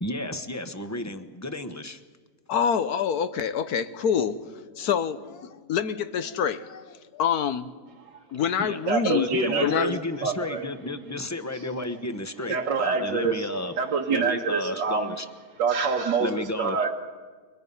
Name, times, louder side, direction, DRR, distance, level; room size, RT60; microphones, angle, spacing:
voice 1, 0.0-2.0 8.6-8.8 9.1-13.7 14.1-15.3 16.2-16.8, left 1 dB, 15° left, 0.7 m, -32 dB
voice 2, 2.5-7.7 8.3-9.3 9.6-10.0, left 8 dB, 65° left, 1.3 m, -27 dB
voice 3, 8.9-9.9 10.2-10.6 11.5-11.6 12.5-13.5 13.8-15.2 15.6-16.9, right 5 dB, 85° right, 2.0 m, -26 dB
30.0 x 24.5 x 5.5 m
omnidirectional pair, 1.9 m